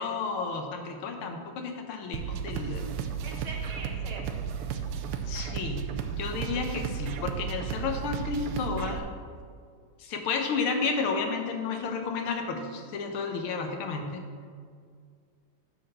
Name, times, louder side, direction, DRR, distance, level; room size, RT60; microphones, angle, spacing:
voice 1, 0.0-2.8 5.3-9.1 10.0-14.2, left 4 dB, 75° left, 4 dB, 1.7 m, -32 dB
sound 1, 2.1-9.0, right 7 dB, 85° right, 1.6 m, -34 dB
voice 2, 3.2-4.4, right 2 dB, 70° right, -1 dB, 2.2 m, -41 dB
9.7 x 4.0 x 6.6 m, 2.1 s
omnidirectional pair, 2.4 m